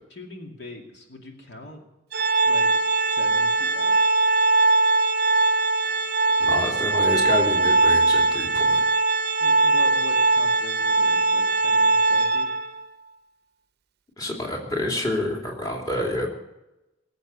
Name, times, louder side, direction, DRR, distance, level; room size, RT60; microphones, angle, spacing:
voice 1, 0.1-1.8 2.4-4.0 9.4-12.5, left 2 dB, 60° left, 1 dB, 2.4 m, -41 dB
Organ, 2.1-12.8, right 3 dB, 50° right, 0.7 m, -20 dB
voice 2, 6.4-8.8 14.2-16.3, left 1 dB, 20° left, -1 dB, 2.7 m, -28 dB
19.5 x 8.2 x 8.3 m, 0.93 s
head